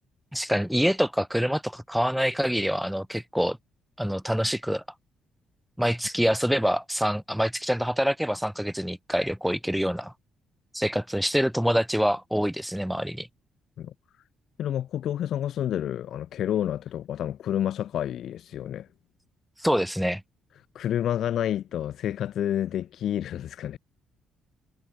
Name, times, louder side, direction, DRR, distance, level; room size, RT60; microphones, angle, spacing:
voice 1, 0.3-3.6 4.0-4.8 5.8-10.1 10.7-13.3 19.6-20.2, equal, ahead, 1.1 m, -26 dB
voice 2, 14.6-18.9 20.7-23.8, left 11 dB, 70° left, 0.3 m, -29 dB
hypercardioid pair, 55°, 0 cm